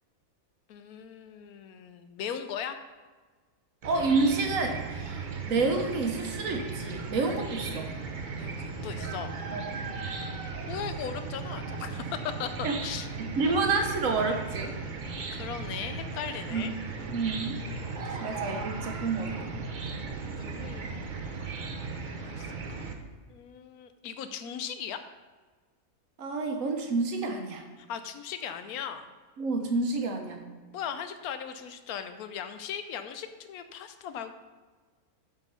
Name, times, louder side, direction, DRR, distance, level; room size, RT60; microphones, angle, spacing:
voice 1, 0.7-2.8 8.4-9.3 10.7-13.1 13.4-13.6 15.3-16.7 18.0-18.2 18.5-18.6 19.9-20.2 20.5-20.9 22.1-22.9 23.3-25.0 27.8-29.1 30.7-34.3, left 8 dB, 85° left, 9 dB, 1.1 m, -38 dB
Chicken rooster / Cricket, 3.8-22.9, right 4 dB, 45° right, 0.7 m, -37 dB
voice 2, 3.8-7.9 9.5-9.6 12.6-12.7 13.2-14.7 16.5-16.6 17.1-17.6 18.2-19.3 26.2-27.6 29.4-30.5, right 3 dB, 65° right, 4 dB, 1.3 m, -29 dB
7.4 x 5.2 x 5.6 m, 1.4 s
omnidirectional pair, 1.5 m